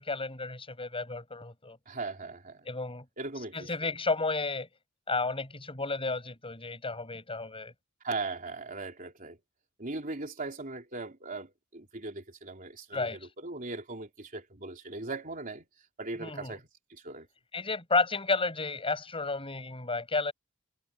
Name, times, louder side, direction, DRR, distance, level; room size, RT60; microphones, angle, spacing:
voice 1, 0.0-1.8 2.7-3.1 3.5-4.7 5.1-7.7 12.9-13.3 16.2-16.6 17.5-20.3, left 3 dB, 25° left, 7.2 m, -32 dB
voice 2, 1.9-2.7 3.2-3.7 8.0-9.4 9.8-15.7 16.0-16.6 16.9-17.3, right 3 dB, 40° right, 3.7 m, -39 dB
head